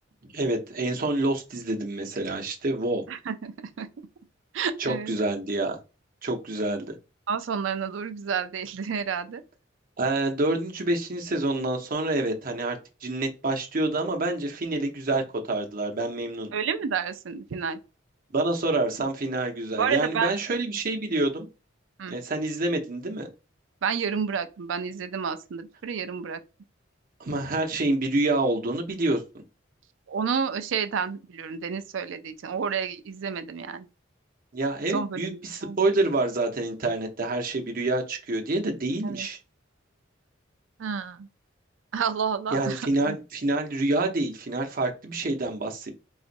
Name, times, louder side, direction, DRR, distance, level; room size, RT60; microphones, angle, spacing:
voice 1, 0.3-3.0 4.8-5.8 6.2-6.9 10.0-16.5 18.3-21.5 22.1-23.3 27.2-29.2 34.5-39.4 42.5-45.9, right 2 dB, 45° right, 0.7 m, -27 dB
voice 2, 3.1-3.9 4.5-5.1 7.3-9.4 16.5-17.8 19.7-20.3 22.0-22.2 23.8-26.4 30.1-33.9 34.9-35.8 39.0-39.3 40.8-41.3 41.9-43.2, right 6 dB, 70° right, 0.4 m, -30 dB
4.0 x 2.4 x 2.5 m
head